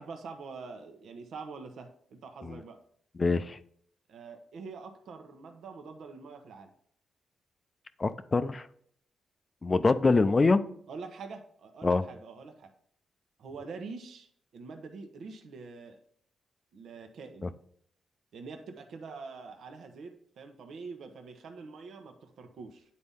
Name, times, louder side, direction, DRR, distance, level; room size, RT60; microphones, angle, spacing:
voice 1, 0.0-2.8 4.1-6.7 10.0-10.2 10.9-12.7 13.4-14.3 14.5-16.0 16.7-17.5 18.3-22.8, right 4 dB, 75° right, 0.9 m, -45 dB
voice 2, 3.2-3.6 8.0-8.6 9.6-10.6 11.8-12.0 17.4-17.5, left 3 dB, 30° left, 0.5 m, -24 dB
9.6 x 4.2 x 3.6 m
cardioid pair, 80°, 0 cm